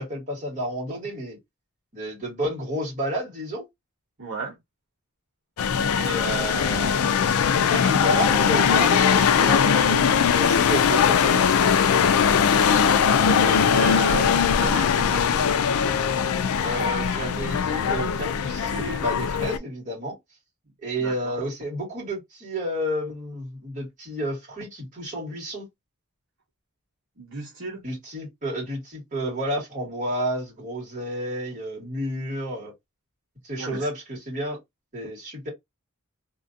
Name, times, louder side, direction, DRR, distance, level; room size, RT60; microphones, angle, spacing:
voice 1, 0.0-1.4 1.9-3.6 6.0-11.7 16.6-20.2 20.8-25.7 27.8-32.7 33.4-34.6 34.9-35.5, equal, 35° right, 2.0 m, -31 dB
voice 2, 4.2-4.6 13.4-15.6 21.0-21.3 27.2-27.8 33.6-33.9, right 3 dB, 60° right, 1.1 m, -34 dB
sound 1, 5.6-19.6, left 7 dB, 75° left, 0.4 m, -20 dB
3.2 x 2.6 x 2.6 m
head